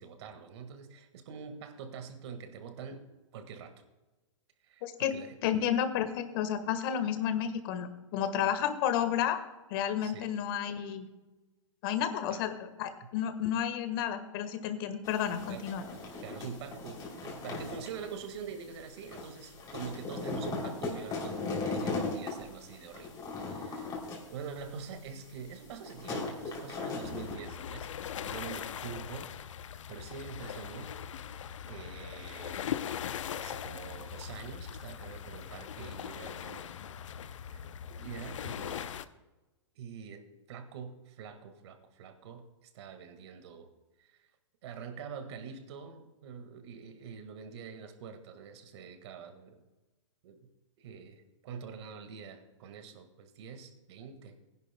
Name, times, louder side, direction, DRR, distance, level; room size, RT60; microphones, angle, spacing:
voice 1, 0.0-3.8 4.6-5.5 10.0-10.3 12.3-12.4 15.5-15.7 16.2-23.9 24.3-27.9 28.2-29.3 29.6-31.0 31.7-32.7 33.3-36.7 37.5-37.6 37.9-38.9 39.7-40.2 40.5-43.7 44.0-44.2 44.6-49.6 50.2-50.4 50.8-54.4, right 6 dB, 60° right, 8 dB, 1.7 m, -45 dB
voice 2, 4.8-5.1 5.4-9.4 9.7-11.1 11.8-15.8, left 9 dB, 45° left, 9 dB, 1.4 m, -31 dB
sound 1, 15.0-27.4, left 3 dB, 25° left, 3.0 m, -38 dB
sound 2, 27.0-39.0, left 9 dB, 75° left, 0.6 m, -40 dB
19.5 x 11.0 x 2.2 m, 1.1 s
hypercardioid pair, 130°, 16 cm